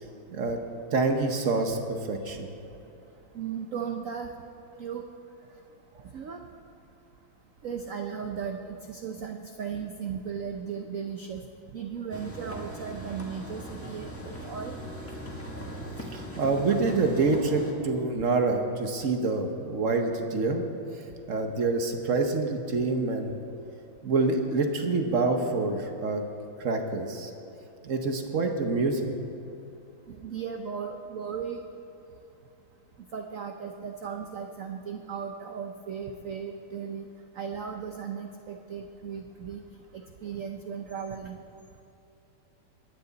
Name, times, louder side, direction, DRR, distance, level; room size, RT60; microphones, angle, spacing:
voice 1, 0.3-0.6 0.9-2.5 16.1-20.6 21.3-23.4 24.0-26.2 26.6-27.3 27.8-29.1, right 3 dB, 50° right, 4 dB, 1.0 m, -26 dB
voice 2, 3.3-4.3 4.8-5.0 6.1-6.4 7.6-11.4 11.7-14.8 30.1-31.6 33.1-37.1 37.4-39.6 40.2-41.4, right 7 dB, 90° right, 4 dB, 0.7 m, -36 dB
sound 1, 12.1-17.7, equal, 10° left, 1.2 m, -39 dB
22.0 x 9.5 x 4.0 m, 2.8 s
omnidirectional pair, 2.3 m